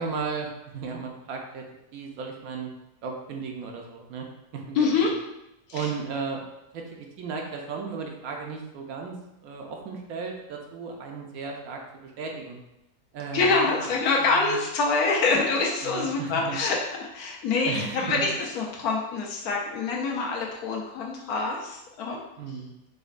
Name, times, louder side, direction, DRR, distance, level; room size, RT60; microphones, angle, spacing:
voice 1, 0.0-1.6 1.9-2.7 3.0-4.3 4.5-4.9 5.7-6.4 6.7-9.2 9.4-12.6 13.1-13.9 14.2-14.6 15.8-16.6 17.6-18.3 22.4-22.7, right 5 dB, 75° right, 1 dB, 1.0 m, -35 dB
voice 2, 4.7-5.1 5.7-5.9 13.3-22.2, left 4 dB, 80° left, -1 dB, 1.1 m, -25 dB
5.0 x 2.1 x 2.4 m, 0.90 s
omnidirectional pair, 1.6 m